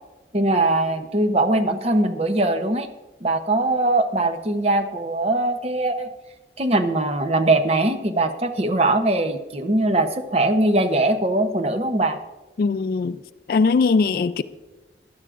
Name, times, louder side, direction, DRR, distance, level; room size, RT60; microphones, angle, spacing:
voice 1, 0.3-2.9 3.2-6.1 6.6-12.2, right 2 dB, 35° right, 0.7 m, -21 dB
voice 2, 12.6-13.2 13.5-14.4, left 4 dB, 55° left, 0.3 m, -20 dB
16.0 x 11.0 x 2.5 m
head